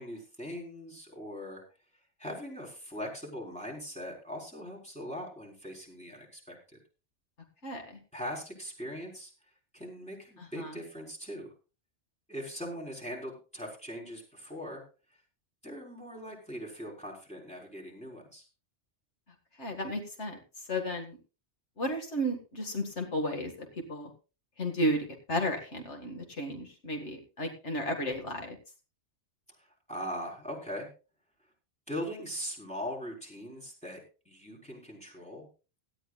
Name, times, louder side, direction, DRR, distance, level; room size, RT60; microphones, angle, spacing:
voice 1, 0.0-1.6 2.2-6.6 8.1-9.3 9.7-11.5 12.3-14.8 15.6-18.4 29.6-30.9 31.9-34.0 34.3-35.4, equal, 5° left, -2 dB, 4.2 m, -40 dB
voice 2, 10.4-10.7 19.6-20.4 20.7-21.2 21.8-23.5 23.9-24.1 24.6-25.0 25.3-28.6, equal, 80° left, 4 dB, 2.3 m, -33 dB
17.5 x 12.5 x 2.4 m, 0.33 s
omnidirectional pair, 1.2 m